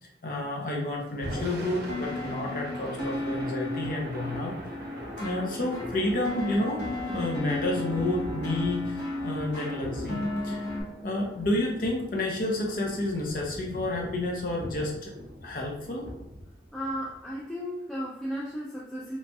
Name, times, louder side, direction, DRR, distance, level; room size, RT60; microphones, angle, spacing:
voice 1, 0.0-4.5 5.2-10.7 11.0-15.1 15.4-16.1, left 1 dB, 50° left, -1 dB, 0.6 m, -30 dB
Thunder / Rain, 1.1-17.3, equal, 60° right, 0.6 m, -41 dB
sound 1, 1.9-10.8, left 2 dB, 75° left, 1.0 m, -34 dB
voice 2, 16.7-19.2, equal, ahead, -6 dB, 0.3 m, -34 dB
3.0 x 2.2 x 2.7 m, 0.83 s
head